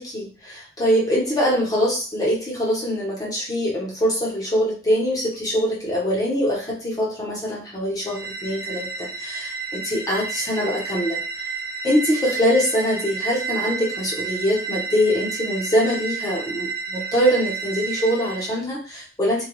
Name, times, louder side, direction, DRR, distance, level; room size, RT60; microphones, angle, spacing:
voice 1, 0.0-11.2 11.8-19.5, equal, 20° left, -5 dB, 0.8 m, -23 dB
sound 1, 8.0-18.5, right 4 dB, 20° right, 0.5 m, -31 dB
2.3 x 2.3 x 3.0 m, 0.37 s
head